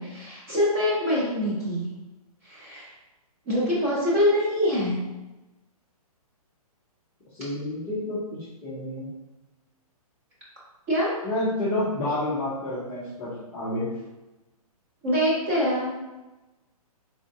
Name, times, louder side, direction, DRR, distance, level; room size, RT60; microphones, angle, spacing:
voice 1, 0.0-1.9 2.4-2.9 3.5-5.0 10.9-11.1 15.0-15.9, left 1 dB, 25° right, -7 dB, 1.1 m, -24 dB
voice 2, 7.3-8.2 8.6-9.1 11.2-13.9, left 1 dB, 10° left, -14 dB, 0.6 m, -29 dB
3.8 x 3.2 x 2.7 m, 1.1 s
hypercardioid pair, 175°, 19 cm